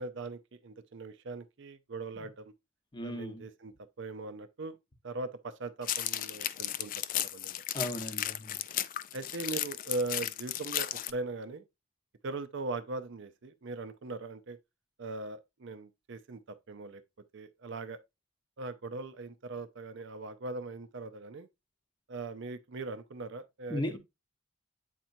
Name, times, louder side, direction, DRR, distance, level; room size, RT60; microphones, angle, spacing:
voice 1, 0.0-2.5 3.0-4.8 5.0-7.5 9.1-11.6 12.2-14.6 15.0-16.4 16.7-17.0 17.3-18.0 18.6-21.5 22.1-24.0, right 3 dB, 60° right, 0.6 m, -40 dB
voice 2, 2.9-3.4 7.7-8.6 23.7-24.0, left 1 dB, 20° left, 0.9 m, -36 dB
sound 1, 5.8-11.1, left 12 dB, 40° left, 0.3 m, -35 dB
8.2 x 4.4 x 2.6 m
head